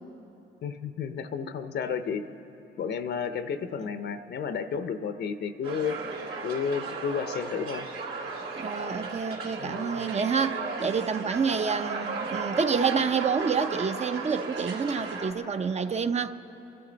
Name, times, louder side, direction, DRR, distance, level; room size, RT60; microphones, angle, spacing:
voice 1, 0.6-2.2 2.8-6.0 6.4-7.9 9.6-10.0, left 6 dB, 60° left, 0.7 m, -32 dB
sound 1, 5.6-15.3, right 4 dB, 65° right, 2.7 m, -35 dB
voice 2, 8.6-16.3, right 5 dB, 35° right, 0.6 m, -28 dB
29.0 x 12.0 x 4.0 m
cardioid pair, 90°, 20 cm